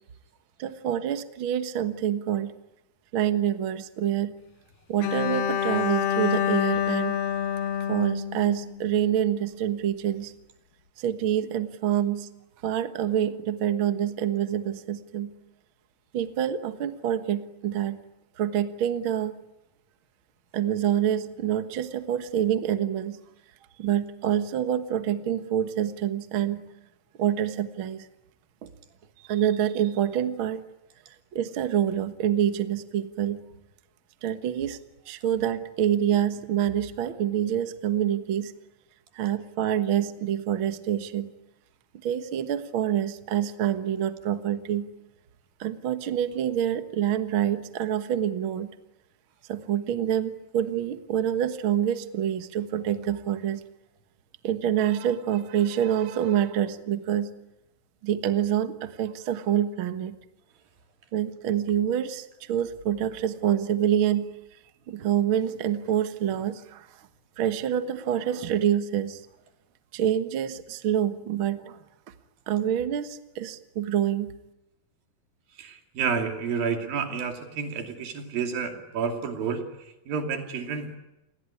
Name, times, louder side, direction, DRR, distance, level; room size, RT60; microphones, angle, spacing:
voice 1, 0.6-2.5 3.1-4.3 4.9-7.2 7.9-10.3 11.0-12.3 12.6-15.3 16.1-18.0 18.4-19.3 20.5-23.2 23.8-26.6 27.2-28.0 28.6-28.7 29.2-30.6 31.3-33.4 34.2-34.8 35.1-38.5 39.1-41.3 42.0-44.9 45.6-48.7 49.5-53.6 54.4-57.3 58.0-60.1 61.1-64.3 64.9-66.9 67.4-69.2 69.9-71.8 72.5-74.3, right 10 dB, 50° right, 10 dB, 1.6 m, -26 dB
Bowed string instrument, 5.0-9.1, left 9 dB, 80° left, 3.4 m, -27 dB
voice 2, 75.6-81.0, right 6 dB, 85° right, 5 dB, 4.5 m, -30 dB
29.0 x 21.0 x 9.8 m, 0.93 s
omnidirectional pair, 4.0 m